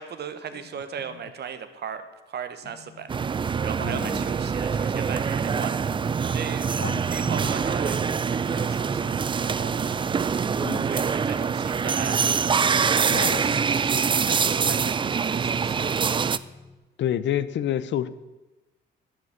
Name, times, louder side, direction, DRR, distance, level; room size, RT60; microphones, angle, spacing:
voice 1, 0.0-3.1 3.6-5.7 6.3-6.7 7.1-8.0 8.3-9.0 9.4-10.0 10.8-12.4 12.8-16.0, right 7 dB, 55° right, 10 dB, 1.1 m, -37 dB
sound 1, 3.1-16.4, right 6 dB, 25° right, 0.4 m, -25 dB
voice 2, 3.8-4.3 6.8-7.0 10.6-11.0 13.1-13.5 17.0-18.1, left 11 dB, 65° left, 16 dB, 0.7 m, -28 dB
sound 2, 7.2-16.8, left 3 dB, 5° left, 1.3 m, -46 dB
11.0 x 6.3 x 8.0 m, 1.1 s
cardioid pair, 90°, 20 cm